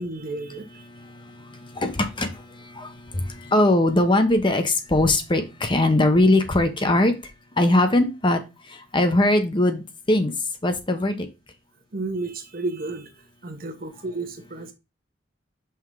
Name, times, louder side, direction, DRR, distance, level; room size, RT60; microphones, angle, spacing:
voice 1, 0.0-0.9 11.9-13.1 13.4-14.7, right 2 dB, 50° right, 1.1 m, -32 dB
voice 2, 0.9-7.1 7.6-8.4 8.7-10.3 10.6-11.3, left 1 dB, 25° left, 0.8 m, -21 dB
5.8 x 3.6 x 4.7 m
head